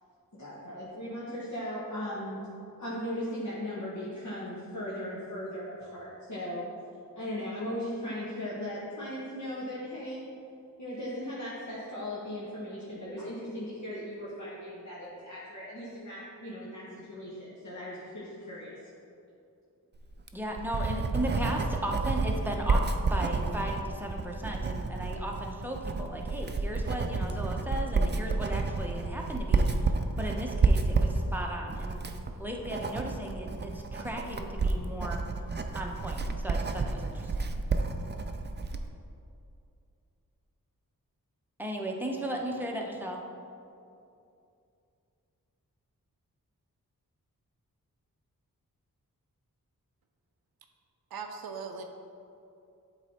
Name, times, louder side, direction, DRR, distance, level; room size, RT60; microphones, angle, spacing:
voice 1, 0.3-2.5 2.8-6.7 7.2-10.3 10.8-18.9, left 1 dB, 55° left, -8 dB, 1.2 m, -38 dB
Writing, 20.1-38.9, right 3 dB, 30° right, 0.4 m, -30 dB
voice 2, 20.3-29.9 30.2-32.0 32.4-35.3 35.7-37.5 41.6-43.2, right 1 dB, 5° right, 0 dB, 0.8 m, -36 dB
voice 3, 51.1-51.8, right 5 dB, 90° right, 4 dB, 0.5 m, -39 dB
8.0 x 3.2 x 4.3 m, 2.6 s
cardioid pair, 50°, 35 cm